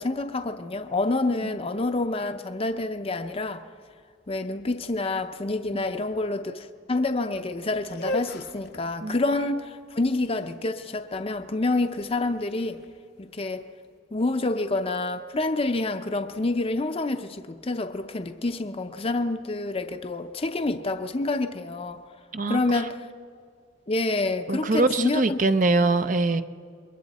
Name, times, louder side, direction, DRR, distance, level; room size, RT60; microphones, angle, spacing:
voice 1, 0.0-3.7 4.3-12.8 13.2-13.7 14.1-22.0 22.5-23.1 23.9-25.4, left 2 dB, 30° left, 0.7 m, -28 dB
sound 1, 7.8-13.8, left 1 dB, 60° left, 1.0 m, -38 dB
voice 2, 24.5-26.4, right 3 dB, 45° right, 0.6 m, -23 dB
28.0 x 22.0 x 4.2 m
head